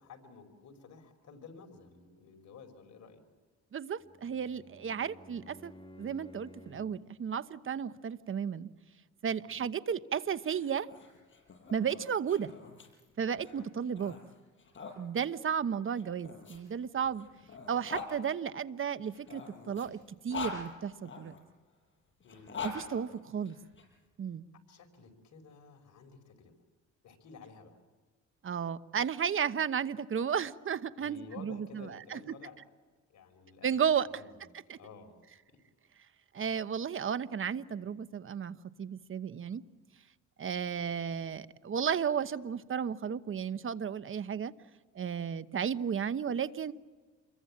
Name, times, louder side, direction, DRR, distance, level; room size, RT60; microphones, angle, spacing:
voice 1, 0.0-3.2 4.9-5.0 9.5-9.7 13.6-13.7 22.2-22.6 24.7-26.5 27.0-27.8 31.0-32.6 33.1-34.3 34.8-35.2 35.5-35.6 40.5-40.7, left 5 dB, 65° left, 4.9 m, -52 dB
voice 2, 3.7-5.7 6.0-8.7 9.2-10.9 11.7-12.5 13.2-14.1 15.0-17.3 17.7-20.0 20.2-21.3 22.6-23.6 24.2-24.4 28.4-32.4 33.6-34.1 34.7-34.8 36.3-39.6 40.4-44.5 44.9-46.7, right 7 dB, 45° right, 1.0 m, -33 dB
Bowed string instrument, 3.9-7.1, left 1 dB, 15° left, 1.8 m, -54 dB
sound 1, 10.3-15.0 15.9-18.1 19.0-21.4 22.2-23.8, left 5 dB, 40° left, 6.3 m, -44 dB
27.5 x 22.5 x 8.6 m
cardioid pair, 90°, 30 cm